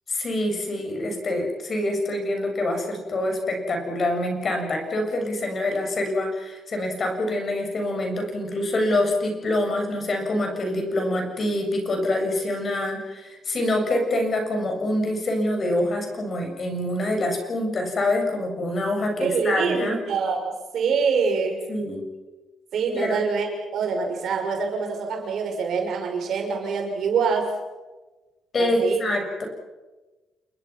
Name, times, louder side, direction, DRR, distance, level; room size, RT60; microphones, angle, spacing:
voice 1, 0.1-20.0 21.7-22.0 22.9-23.2 28.5-29.4, left 1 dB, 45° left, 3 dB, 7.5 m, -25 dB
voice 2, 19.2-21.6 22.7-27.5 28.6-29.0, right 5 dB, 65° right, 3 dB, 6.0 m, -25 dB
28.5 x 22.0 x 6.1 m, 1.2 s
cardioid pair, 90°, 0 cm